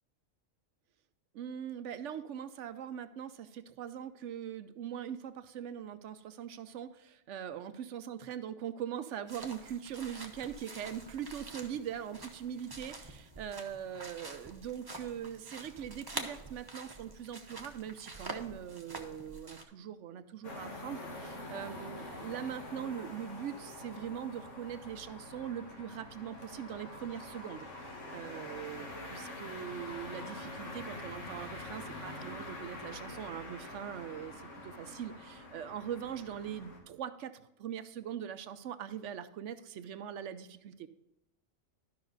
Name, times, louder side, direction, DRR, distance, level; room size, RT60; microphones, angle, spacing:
voice 1, 1.3-40.9, right 9 dB, 70° right, 12 dB, 0.9 m, -42 dB
sound 1, 9.3-19.6, right 2 dB, 20° right, 0.8 m, -46 dB
sound 2, 20.4-36.8, left 2 dB, 70° left, 2.0 m, -45 dB
12.5 x 5.7 x 4.0 m, 0.95 s
omnidirectional pair, 1.3 m